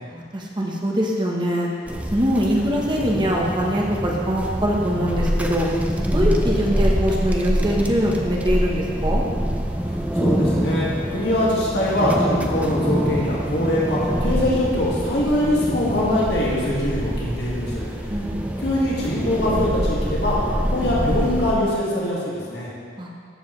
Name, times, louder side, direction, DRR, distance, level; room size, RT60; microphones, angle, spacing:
voice 1, 0.1-1.7 2.1-5.7 6.1-9.2 18.1-18.5 23.0-23.1, equal, 25° right, -2 dB, 1.1 m, -23 dB
sound 1, 1.9-21.5, equal, 10° right, 0.6 m, -25 dB
voice 2, 10.2-10.9 11.1-17.8 18.6-22.7, left 1 dB, 65° left, -6 dB, 2.1 m, -22 dB
14.0 x 7.3 x 3.2 m, 2.1 s
head